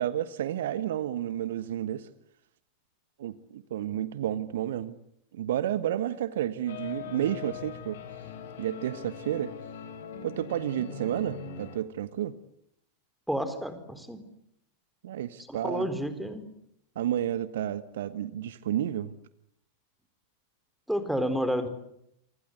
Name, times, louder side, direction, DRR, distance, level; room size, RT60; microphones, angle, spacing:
voice 1, 0.0-2.1 3.2-5.0 5.3-8.0 8.6-9.5 10.2-12.3 15.0-15.9 16.9-19.1, right 11 dB, 60° right, 14 dB, 1.3 m, -31 dB
sound 1, 6.7-11.8, left 6 dB, 55° left, 4.3 m, -41 dB
voice 2, 13.3-14.2 15.5-16.5 20.9-21.7, equal, ahead, 10 dB, 4.2 m, -30 dB
28.0 x 25.0 x 8.2 m, 0.75 s
figure-of-eight pair, 90°, 0 cm